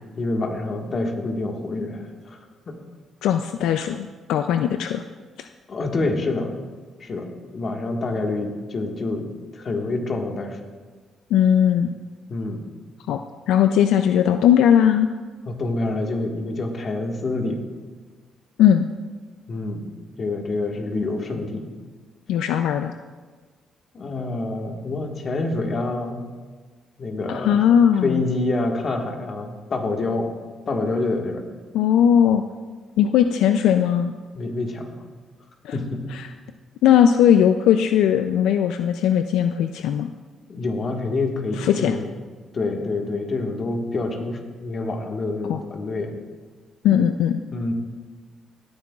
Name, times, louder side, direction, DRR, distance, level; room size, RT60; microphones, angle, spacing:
voice 1, 0.1-2.4 2.7-2.8 5.7-6.6 7.0-7.3 7.5-9.3 9.5-10.6 12.3-12.6 15.4-17.6 19.5-19.9 20.2-21.7 23.9-26.2 27.0-27.6 28.0-30.3 30.7-31.4 34.3-35.0 35.7-36.0 40.5-42.1 42.5-46.2 46.9-47.0 47.5-47.7, left 2 dB, 45° left, 2 dB, 1.5 m, -27 dB
voice 2, 3.2-5.0 11.3-11.9 13.1-13.2 13.5-15.1 18.6-18.9 22.3-22.9 27.3-28.2 31.7-32.4 33.0-34.1 35.6-35.7 36.1-36.2 36.8-40.1 41.6-41.9 45.5-45.6 46.8-47.4, left 9 dB, 85° left, 8 dB, 0.3 m, -18 dB
18.0 x 9.5 x 2.4 m, 1.4 s
cardioid pair, 90°, 0 cm